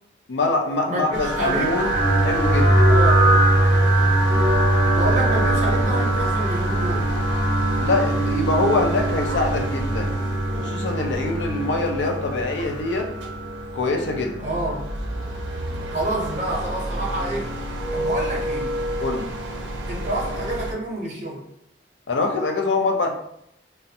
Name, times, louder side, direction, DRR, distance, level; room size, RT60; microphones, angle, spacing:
voice 1, 0.3-2.9 7.8-10.2 10.5-13.1 13.7-14.4 19.0-19.3 22.1-23.1, left 3 dB, 85° left, 3 dB, 0.5 m, -24 dB
voice 2, 0.8-1.7 2.9-3.3 4.9-7.1 14.4-14.9 15.9-17.6 17.9-18.7 19.9-21.4, right 1 dB, 40° right, -1 dB, 0.6 m, -28 dB
sound 1, 1.1-20.8, right 1 dB, 15° left, 0.6 m, -23 dB
sound 2, 1.1-20.7, right 1 dB, 85° right, 0.5 m, -32 dB
2.5 x 2.1 x 2.7 m, 0.75 s
head